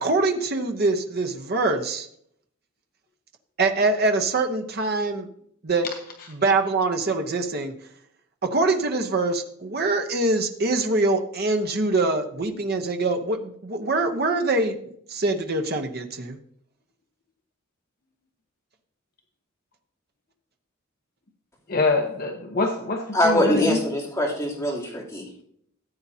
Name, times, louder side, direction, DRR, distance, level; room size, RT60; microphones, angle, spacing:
voice 1, 0.0-2.1 3.6-5.3 5.6-5.9 6.3-7.7 8.5-14.8 15.1-16.4, right 2 dB, 45° right, 5 dB, 0.9 m, -24 dB
voice 2, 21.7-23.8, left 3 dB, 45° left, 3 dB, 0.9 m, -25 dB
voice 3, 23.1-25.2, left 1 dB, 15° left, -5 dB, 3.0 m, -23 dB
14.5 x 8.6 x 2.8 m, 0.68 s
head